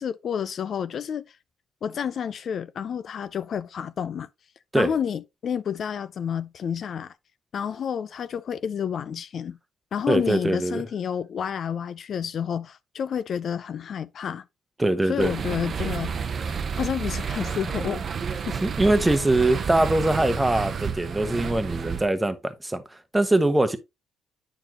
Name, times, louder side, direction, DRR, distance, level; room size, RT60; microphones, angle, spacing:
voice 1, 0.0-1.3 1.8-4.3 4.7-7.1 7.5-9.6 9.9-14.4 15.1-16.1 16.4-18.0 18.3-18.6, left 8 dB, 60° left, 0.4 m, -30 dB
voice 2, 10.1-10.8 14.8-15.3 18.6-22.8 23.1-23.8, right 1 dB, 10° right, 1.0 m, -22 dB
sound 1, 15.2-22.1, right 6 dB, 50° right, 0.7 m, -30 dB
9.0 x 4.5 x 2.9 m
cardioid pair, 90°, 0 cm